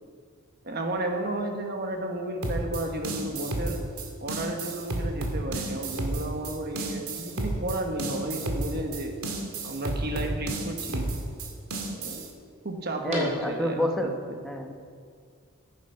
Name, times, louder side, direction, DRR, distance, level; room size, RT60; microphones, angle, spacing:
voice 1, 0.6-3.9 4.2-9.2 9.6-11.1 12.0-12.3 12.6-14.4, right 1 dB, 45° right, 3 dB, 1.3 m, -32 dB
sound 1, 2.4-12.3, right 2 dB, 90° right, 1.9 m, -32 dB
sound 2, 5.4-13.9, right 1 dB, 30° right, 3.2 m, -45 dB
voice 2, 13.0-14.2 14.4-14.7, equal, ahead, 2 dB, 1.0 m, -28 dB
15.0 x 9.3 x 5.7 m, 2.1 s
head